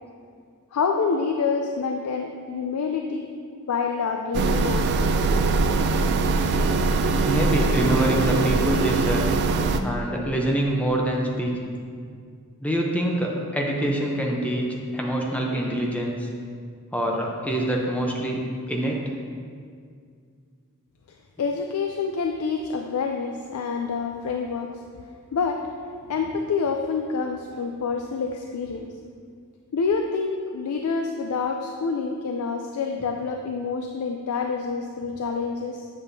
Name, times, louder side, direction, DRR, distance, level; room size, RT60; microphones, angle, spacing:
voice 1, 0.7-3.3 3.7-4.9 21.4-24.7 25.3-25.6 26.1-28.9 29.7-35.9, left 5 dB, 80° left, 3 dB, 0.4 m, -27 dB
sound 1, 4.3-9.8, right 3 dB, 50° right, 0.3 m, -22 dB
voice 2, 7.2-9.3 9.8-11.7 12.6-16.3 16.9-19.1, right 1 dB, 5° left, -1 dB, 0.6 m, -25 dB
7.7 x 6.1 x 2.7 m, 2.2 s
head